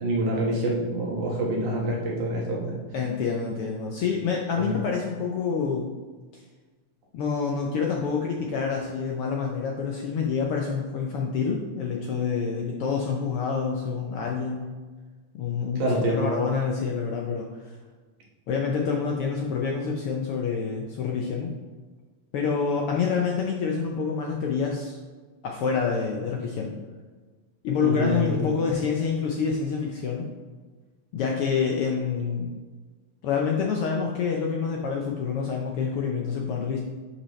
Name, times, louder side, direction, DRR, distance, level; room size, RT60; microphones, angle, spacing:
voice 1, 0.0-2.8 4.6-4.7 15.8-16.3 27.8-28.5, right 1 dB, 80° right, -3 dB, 2.9 m, -26 dB
voice 2, 2.9-5.9 7.1-14.7 15.3-17.8 18.5-21.6 22.3-25.0 25.4-26.8 27.6-30.3 31.1-32.5 33.2-36.8, left 5 dB, 80° left, 0 dB, 1.2 m, -27 dB
9.9 x 5.5 x 3.2 m, 1.4 s
omnidirectional pair, 3.4 m